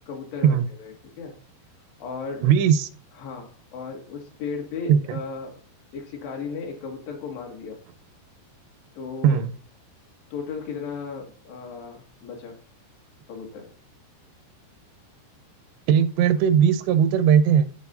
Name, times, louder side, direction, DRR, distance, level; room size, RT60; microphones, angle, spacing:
voice 1, 0.1-1.3 2.0-2.5 3.2-5.6 5.9-7.8 9.0-9.4 10.3-12.6 13.3-13.6, left 5 dB, 75° left, 3.8 m, -35 dB
voice 2, 2.4-2.9 4.9-5.2 9.2-9.5 15.9-17.6, right 8 dB, 90° right, 2.8 m, -18 dB
13.5 x 4.8 x 2.6 m
omnidirectional pair, 4.9 m